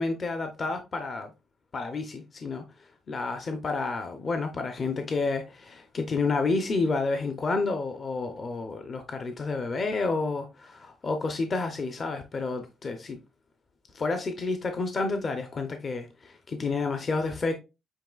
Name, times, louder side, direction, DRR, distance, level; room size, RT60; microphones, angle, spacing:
voice 1, 0.0-1.3 1.7-2.6 3.1-13.2 13.9-17.5, left 3 dB, 40° left, 0.7 m, -30 dB
7.4 x 3.0 x 2.3 m
cardioid pair, 90°, 0 cm